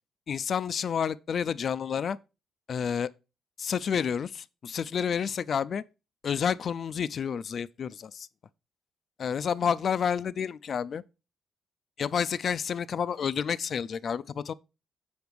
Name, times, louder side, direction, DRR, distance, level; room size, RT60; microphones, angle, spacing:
voice 1, 0.3-2.2 2.7-3.1 3.6-5.8 6.2-8.3 9.2-11.0 12.0-14.5, left 7 dB, 50° left, 0.4 m, -29 dB
7.9 x 5.2 x 4.7 m
cardioid pair, 90°, 0 cm